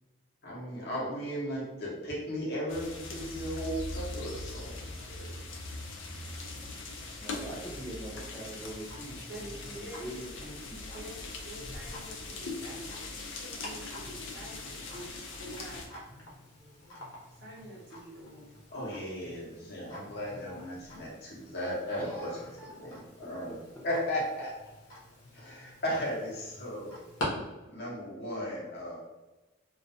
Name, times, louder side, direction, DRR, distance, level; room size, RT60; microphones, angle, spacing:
voice 1, 0.4-5.3 18.7-23.6 23.8-24.5 25.3-27.0 27.7-29.0, equal, 50° left, -5 dB, 0.8 m, -36 dB
sound 1, 2.7-15.9, left 3 dB, 70° left, 0.4 m, -41 dB
voice 2, 7.2-11.1 22.0-22.7 23.5-23.6, right 1 dB, 10° left, -5 dB, 0.6 m, -43 dB
Tick-tock, 8.4-27.3, left 1 dB, 90° left, 0.8 m, -47 dB
voice 3, 9.7-10.0 10.8-11.1 11.4-13.1 13.3-15.1 15.4-15.8 17.4-18.6, right 1 dB, 50° right, -5 dB, 0.8 m, -47 dB
2.4 x 2.2 x 2.6 m, 1.1 s
head